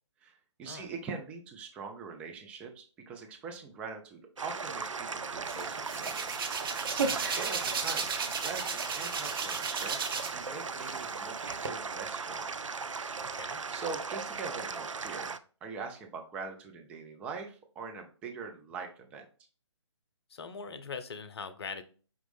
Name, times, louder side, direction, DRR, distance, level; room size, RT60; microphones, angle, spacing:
voice 1, 0.2-6.5 7.2-8.1 8.4-12.6 13.7-15.3 15.6-19.2, right 5 dB, 5° right, 3 dB, 0.4 m, -43 dB
sound 1, 4.4-15.4, right 5 dB, 85° right, 0.4 m, -38 dB
Hands, 5.5-10.5 10.8-11.7, right 5 dB, 45° right, 0.7 m, -34 dB
voice 2, 7.0-7.3 13.3-13.6 20.3-21.8, left 5 dB, 55° left, 10 dB, 0.6 m, -42 dB
5.2 x 3.0 x 3.2 m, 0.39 s
figure-of-eight pair, 140°, 16 cm